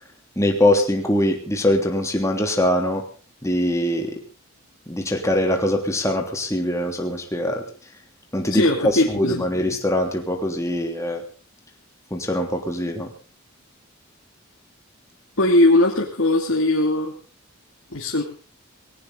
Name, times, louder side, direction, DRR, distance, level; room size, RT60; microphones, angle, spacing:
voice 1, 0.4-3.0 3.4-4.2 4.9-7.6 8.3-11.2 12.1-13.1, left 1 dB, 15° left, 2 dB, 3.1 m, -22 dB
voice 2, 8.5-9.8 15.4-17.1 17.9-18.2, left 1 dB, 65° left, -1 dB, 2.7 m, -20 dB
19.0 x 18.0 x 4.0 m, 0.36 s
head